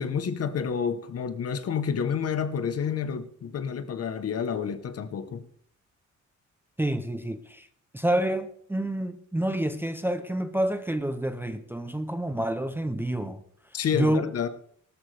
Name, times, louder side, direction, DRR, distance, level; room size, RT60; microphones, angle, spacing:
voice 1, 0.0-5.4 13.7-14.5, left 7 dB, 55° left, 1.0 m, -29 dB
voice 2, 6.8-7.7 7.9-13.4 13.9-14.3, right 1 dB, 5° right, 0.5 m, -28 dB
18.5 x 13.0 x 3.3 m
wide cardioid pair, 180°, 30 cm